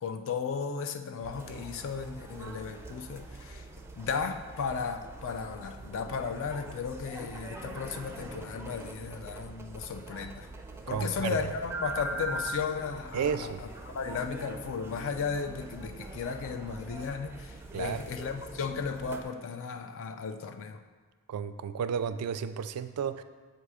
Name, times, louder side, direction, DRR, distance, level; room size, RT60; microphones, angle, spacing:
voice 1, 0.0-3.7 4.0-10.5 10.9-20.8, left 5 dB, 60° left, 7 dB, 0.4 m, -35 dB
sound 1, 1.2-19.2, right 2 dB, 10° right, 0.4 m, -43 dB
voice 2, 10.9-11.4 13.1-13.6 17.7-18.0 21.3-23.2, right 7 dB, 85° right, 11 dB, 0.3 m, -32 dB
7.6 x 2.7 x 4.8 m, 1.5 s
head